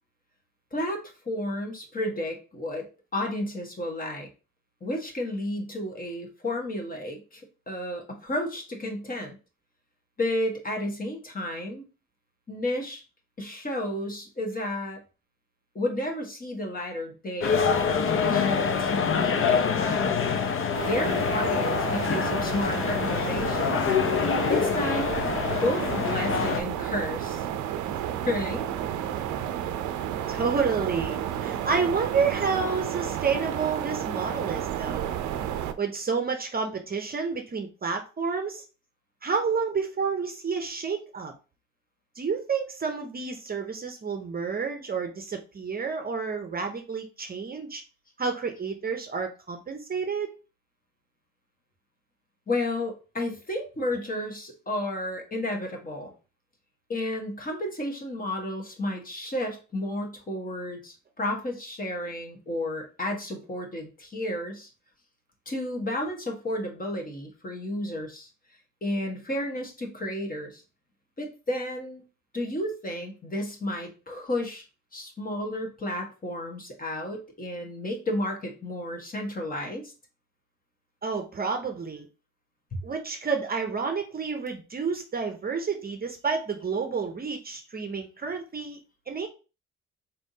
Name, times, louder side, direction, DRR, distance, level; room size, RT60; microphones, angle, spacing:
voice 1, 0.7-2.9 3.1-4.3 4.8-9.4 10.2-11.8 12.5-13.0 13.4-15.0 15.7-20.2 20.5-23.9 24.5-25.1 25.6-27.4 28.2-28.7 52.5-56.1 56.9-64.7 65.5-68.3 68.8-70.6 71.2-72.0 72.3-74.6 74.9-79.9 82.7-82.8, left 1 dB, 30° left, 2 dB, 1.3 m, -32 dB
sound 1, 17.4-26.6, left 6 dB, 45° left, 0.6 m, -25 dB
sound 2, 20.7-35.7, right 10 dB, 75° right, 0.5 m, -32 dB
voice 2, 30.3-35.1 35.8-38.6 39.2-41.3 42.2-47.8 48.2-50.3 81.0-82.1 82.8-88.8 89.1-89.3, right 5 dB, 30° right, 5 dB, 0.7 m, -30 dB
4.3 x 3.4 x 2.7 m, 0.32 s
cardioid pair, 90°, 30 cm